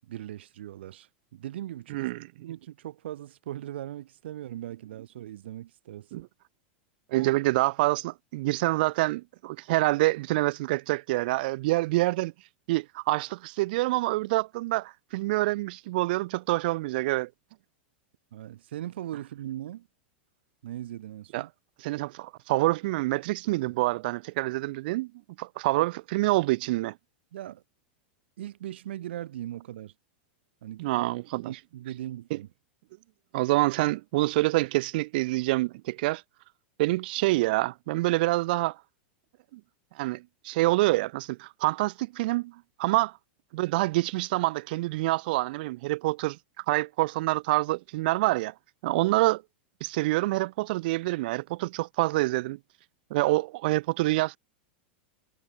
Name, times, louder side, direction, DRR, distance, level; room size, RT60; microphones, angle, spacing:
voice 1, 0.0-2.1 2.4-6.2 7.1-7.3 18.3-19.9 20.6-21.5 25.8-25.9 27.3-27.6 28.4-29.9 30.6-31.1 31.4-32.5, right 12 dB, 80° right, 7.8 m, -39 dB
voice 2, 1.9-2.3 6.1-6.2 7.1-12.3 12.7-17.3 21.3-21.5 21.8-25.1 25.4-26.9 30.8-31.5 32.3-32.4 33.3-36.2 36.8-38.7 39.5-39.6 40.0-42.5 42.8-43.1 43.5-46.4 46.7-48.5 48.8-49.4 49.8-52.6 53.1-54.4, right 20 dB, 60° right, 3.3 m, -26 dB
supercardioid pair, 150°, 6 cm